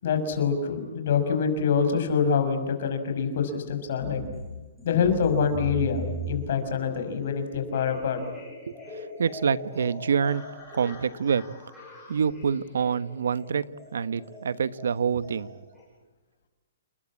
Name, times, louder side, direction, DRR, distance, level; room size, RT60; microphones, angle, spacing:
voice 1, 0.0-4.2 4.8-8.2, left 6 dB, 45° left, 7 dB, 5.8 m, -25 dB
sound 1, 4.0-15.8, equal, ahead, 7.5 m, -40 dB
voice 2, 9.2-10.4 10.7-11.4 12.1-13.7 13.9-15.5, right 6 dB, 85° right, 15 dB, 1.1 m, -26 dB
30.0 x 21.0 x 8.7 m, 1.2 s
hypercardioid pair, 180°, 0 cm